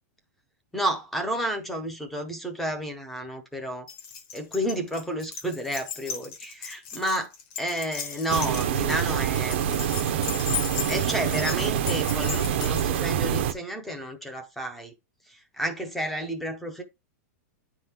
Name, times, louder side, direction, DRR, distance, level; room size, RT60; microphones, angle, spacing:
voice 1, 0.7-3.9 4.3-7.3 7.6-10.2 10.9-14.9 15.3-16.8, right 1 dB, ahead, 0.5 m, -31 dB
Keys jangling, 3.9-13.1, left 8 dB, 30° left, 1.0 m, -37 dB
sound 1, 8.3-13.5, right 9 dB, 45° right, 0.5 m, -26 dB
10.0 x 3.6 x 2.8 m
supercardioid pair, 175°, 9 cm